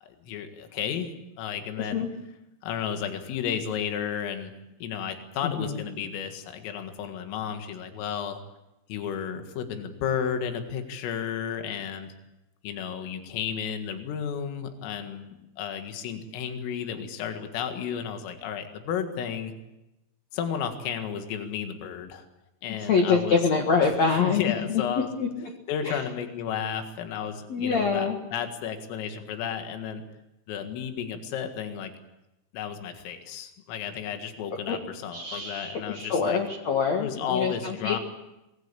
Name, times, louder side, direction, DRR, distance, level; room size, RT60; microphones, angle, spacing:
voice 1, 0.0-1.1 1.4-2.1 2.6-4.5 4.8-8.4 8.9-12.1 12.6-15.3 15.6-19.5 20.3-22.3 22.6-23.4 23.8-23.9 24.2-25.1 25.7-30.0 30.5-31.9 32.5-36.4 37.0-38.0, left 8 dB, 80° left, 6 dB, 4.5 m, -33 dB
voice 2, 1.8-2.1 5.4-5.8 22.8-25.5 25.8-26.0 27.5-28.2 34.7-34.8 35.1-38.0, left 5 dB, 60° left, 3 dB, 1.8 m, -26 dB
25.5 x 20.0 x 8.4 m, 0.93 s
omnidirectional pair, 5.9 m